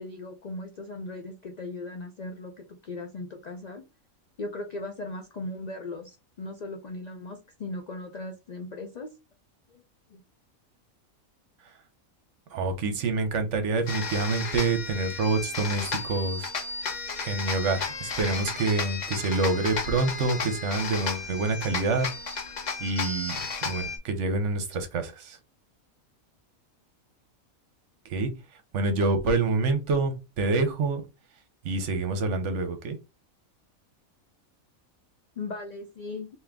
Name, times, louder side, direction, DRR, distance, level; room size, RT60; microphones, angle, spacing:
voice 1, 0.0-3.8 4.4-9.1 9.7-9.8 10.1-10.2 12.8-12.9 35.4-36.3, left 2 dB, 90° left, 4 dB, 0.3 m, -38 dB
voice 2, 12.5-16.5 17.2-22.1 22.8-23.4 23.6-25.4 28.0-28.3 28.7-31.0 31.6-33.0, right 3 dB, 65° right, 7 dB, 1.0 m, -27 dB
sound 1, 13.9-24.0, left 4 dB, 40° left, 0.7 m, -33 dB
3.6 x 2.7 x 3.4 m, 0.27 s
omnidirectional pair, 1.4 m